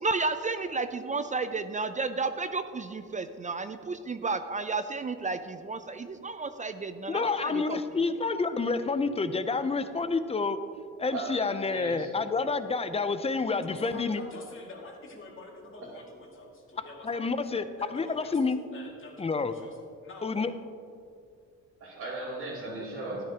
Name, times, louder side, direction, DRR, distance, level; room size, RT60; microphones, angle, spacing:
voice 1, 0.0-7.8, right 4 dB, 25° right, 10 dB, 0.4 m, -32 dB
voice 2, 7.1-10.6 11.0-14.2 17.0-17.6 17.9-18.6 19.2-19.5 20.2-20.5, left 4 dB, 20° left, 11 dB, 0.5 m, -28 dB
voice 3, 11.1-12.1 15.8-16.0 21.8-23.2, right 2 dB, 70° right, -10 dB, 2.7 m, -37 dB
voice 4, 13.6-17.2 17.8-18.4 18.7-20.4, left 2 dB, 40° left, -1 dB, 2.2 m, -46 dB
13.0 x 10.0 x 2.9 m, 2.4 s
cardioid pair, 90°, 30 cm